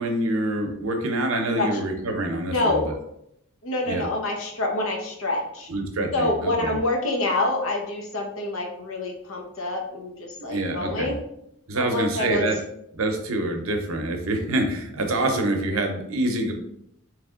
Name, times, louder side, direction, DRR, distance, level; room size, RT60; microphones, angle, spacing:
voice 1, 0.0-3.0 3.9-4.1 5.7-6.8 10.5-11.1 11.7-12.6 12.9-16.5, right 1 dB, 75° right, 4 dB, 0.7 m, -26 dB
voice 2, 2.5-2.8 3.6-5.7 6.1-11.2 11.8-12.4, left 2 dB, 75° left, 1 dB, 0.9 m, -26 dB
3.4 x 3.2 x 3.6 m, 0.76 s
head